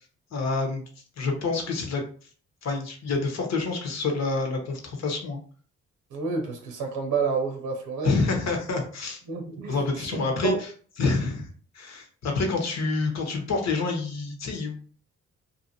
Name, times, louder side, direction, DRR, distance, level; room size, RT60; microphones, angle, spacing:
voice 1, 0.3-0.8 1.2-2.3 2.6-5.4 8.0-9.2 9.7-10.7 11.0-11.5 11.7-14.8, left 3 dB, 60° left, 3 dB, 1.0 m, -27 dB
voice 2, 6.1-8.2 9.3-10.6, right 5 dB, 90° right, 2 dB, 0.7 m, -30 dB
2.7 x 2.4 x 2.7 m, 0.43 s
cardioid pair, 65°, 30 cm